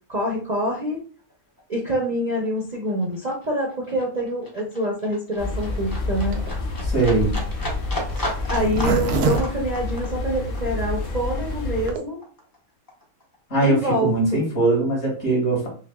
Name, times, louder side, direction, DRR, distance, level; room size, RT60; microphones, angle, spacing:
voice 1, 0.1-1.0 1.7-6.4 8.5-12.2 13.6-14.4, equal, 40° right, -2 dB, 0.6 m, -26 dB
Livestock farm animals working animals, 1.2-1.3 1.6-12.6 12.9-13.9 14.2-14.3, left 1 dB, 20° left, 0.6 m, -35 dB
sound 1, 5.4-11.9, left 2 dB, 80° left, 1.4 m, -28 dB
Zipper (clothing), 6.3-10.6 11.1-11.2 11.3-11.4 11.7-12.0, right 4 dB, 90° right, 1.1 m, -27 dB
voice 2, 6.8-7.4 13.5-15.7, right 2 dB, 60° left, -3 dB, 2.4 m, -21 dB
5.7 x 2.1 x 2.3 m, 0.40 s
omnidirectional pair, 1.5 m